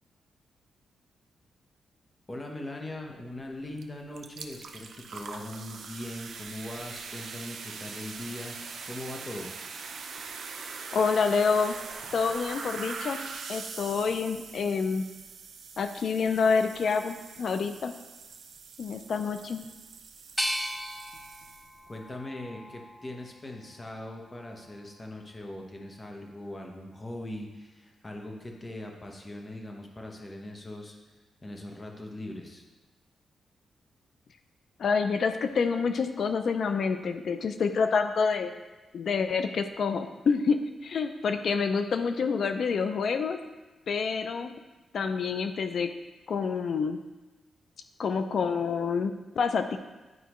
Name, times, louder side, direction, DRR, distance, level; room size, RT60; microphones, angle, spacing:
voice 1, 2.3-8.6 8.8-9.5 21.9-31.0 31.4-32.6, left 1 dB, 25° left, 1 dB, 1.1 m, -40 dB
sound 1, 3.8-3.9 4.1-21.9, right 5 dB, 65° right, 0.6 m, -42 dB
voice 2, 10.9-11.8 12.1-13.2 13.5-15.1 15.8-17.9 18.8-19.6 34.8-38.5 38.9-43.4 43.9-44.5 44.9-45.9 46.3-47.0 48.0-49.8, left 5 dB, 60° left, 8 dB, 0.4 m, -27 dB
sound 2, 20.4-23.3 23.8-24.7, equal, ahead, 0.4 m, -37 dB
10.0 x 4.6 x 3.1 m, 1.1 s
cardioid pair, 110°, 0 cm